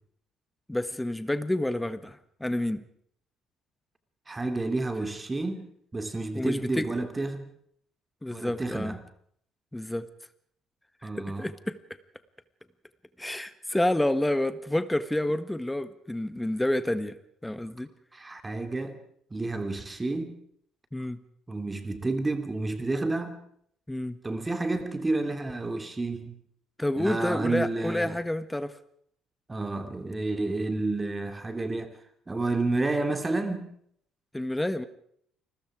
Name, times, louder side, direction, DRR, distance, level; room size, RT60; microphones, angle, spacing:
voice 1, 0.7-2.8 6.3-7.0 8.2-9.0 9.7-10.1 11.0-11.8 13.2-17.9 20.9-21.2 23.9-24.2 26.8-28.7 34.3-34.9, left 1 dB, 10° left, 1.6 m, -29 dB
voice 2, 4.3-5.6 5.9-7.5 8.3-9.0 11.0-11.5 18.1-19.0 19.3-20.4 21.5-23.4 24.2-26.3 27.0-28.2 29.5-31.9 32.3-33.7, right 2 dB, 20° right, 2.7 m, -30 dB
29.5 x 20.5 x 5.0 m
figure-of-eight pair, 50°, 0 cm